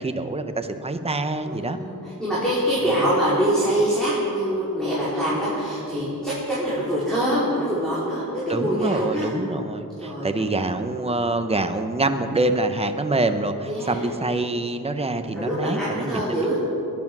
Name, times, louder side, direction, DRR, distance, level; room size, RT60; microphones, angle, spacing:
voice 1, 0.0-1.8 8.5-16.2, right 2 dB, 15° right, 7 dB, 0.9 m, -25 dB
voice 2, 1.4-9.3 10.0-10.4 13.7-14.1 15.3-16.6, equal, ahead, -10 dB, 4.7 m, -24 dB
21.0 x 10.0 x 6.1 m, 2.8 s
wide cardioid pair, 110°, 36 cm